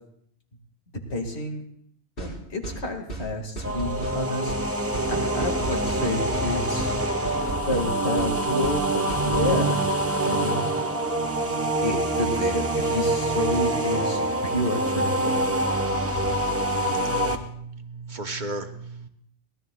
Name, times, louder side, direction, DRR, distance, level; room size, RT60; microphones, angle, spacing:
voice 1, 1.1-1.6 2.2-4.7 5.1-6.9 7.7-9.8 10.2-10.7 11.8-15.5, left 1 dB, 70° left, 3 dB, 2.0 m, -30 dB
sound 1, 2.2-2.3 2.6-2.8 3.1-3.3 3.6-4.2 4.5-4.6 4.9-5.1 5.4-6.0 6.3-6.5 6.8-6.9 7.2-7.9 8.2-8.3 8.6-8.8 9.1-9.5, right 2 dB, 55° left, 4.6 m, -34 dB
sound 2, 3.6-17.4, right 1 dB, 15° right, 0.9 m, -25 dB
voice 2, 16.8-19.1, right 2 dB, 45° right, 6 dB, 0.9 m, -36 dB
24.0 x 17.5 x 2.3 m, 0.69 s
omnidirectional pair, 1.1 m